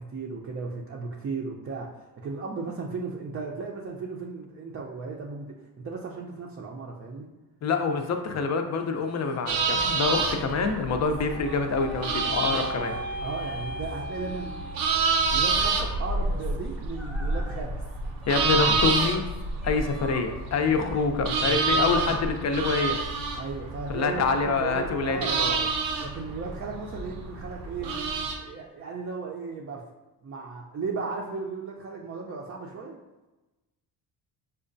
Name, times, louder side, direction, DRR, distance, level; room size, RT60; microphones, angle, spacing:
voice 1, 0.0-7.3 12.2-12.6 13.2-14.5 14.9-17.7 21.4-22.1 23.4-25.6 26.0-27.9 28.4-29.8 30.2-33.0, right 4 dB, 30° right, -2 dB, 0.5 m, -36 dB
voice 2, 7.6-12.9 18.3-19.2 19.6-23.0 23.9-25.6, left 4 dB, 40° left, 6 dB, 0.5 m, -26 dB
sound 1, 8.3-21.0, right 2 dB, ahead, 0.8 m, -46 dB
sound 2, 9.5-28.3, right 4 dB, 85° right, 0.7 m, -28 dB
sound 3, 10.8-15.2, right 1 dB, 85° left, 0.9 m, -38 dB
5.4 x 2.2 x 2.6 m, 1.1 s
cardioid pair, 80°, 43 cm